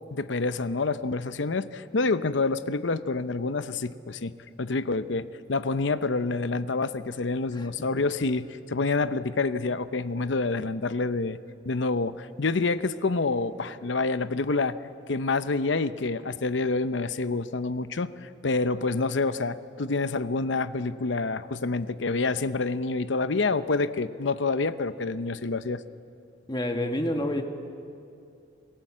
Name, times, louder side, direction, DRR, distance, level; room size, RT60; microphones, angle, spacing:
voice 1, 0.1-4.3 4.6-11.4 11.7-14.8 15.1-25.8, left 3 dB, 70° left, 13 dB, 0.7 m, -27 dB
voice 2, 26.5-27.4, left 1 dB, 20° left, 5 dB, 1.4 m, -28 dB
25.5 x 17.5 x 7.5 m, 2.5 s
head